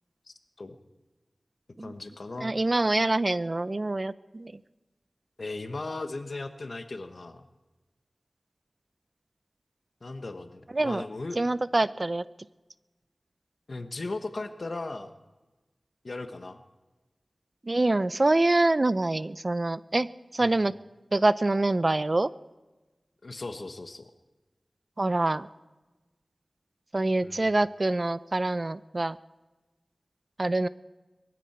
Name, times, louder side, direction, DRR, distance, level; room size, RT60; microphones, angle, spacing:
voice 1, 0.3-0.8 1.8-2.5 5.4-7.4 10.0-11.4 13.7-15.1 16.0-16.6 20.4-20.6 23.2-24.1 27.2-27.5, left 2 dB, 65° left, 8 dB, 1.2 m, -37 dB
voice 2, 2.4-4.5 10.7-11.0 11.4-12.2 17.6-20.1 20.3-20.8 21.1-22.3 25.0-25.5 26.9-29.2 30.4-30.7, right 2 dB, 45° right, 16 dB, 0.5 m, -25 dB
21.5 x 14.5 x 4.4 m, 1.2 s
wide cardioid pair, 55°, 0 cm